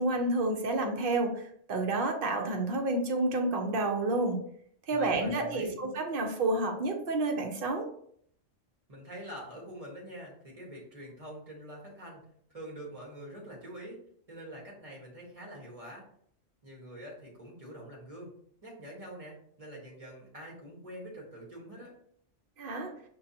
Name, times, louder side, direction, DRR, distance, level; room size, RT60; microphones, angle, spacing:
voice 1, 0.0-1.4 1.7-4.4 4.9-7.9 22.6-22.9, right 2 dB, 55° right, 3 dB, 0.8 m, -29 dB
voice 2, 4.9-5.8 8.9-12.2 12.5-14.0 14.3-16.0 16.6-18.3 18.6-21.9, right 1 dB, 30° right, -3 dB, 1.2 m, -45 dB
5.4 x 2.3 x 2.7 m, 0.64 s
omnidirectional pair, 1.3 m